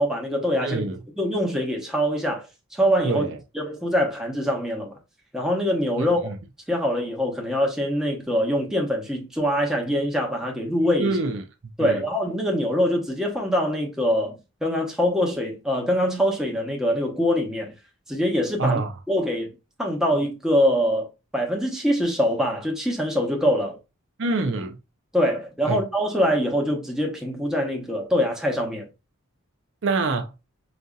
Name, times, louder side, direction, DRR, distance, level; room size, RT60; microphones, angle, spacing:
voice 1, 0.0-0.8 1.2-2.5 2.7-3.3 3.5-4.9 5.3-6.2 6.7-11.2 11.8-17.7 18.1-18.8 19.1-19.5 19.8-23.8 25.1-28.9, equal, ahead, 0.8 m, -24 dB
voice 2, 0.6-1.0 3.0-3.4 6.0-6.4 11.0-11.4 11.8-12.0 18.6-18.9 24.2-24.8 25.6-25.8 29.8-30.3, right 3 dB, 55° right, 0.5 m, -25 dB
5.0 x 2.6 x 2.3 m
head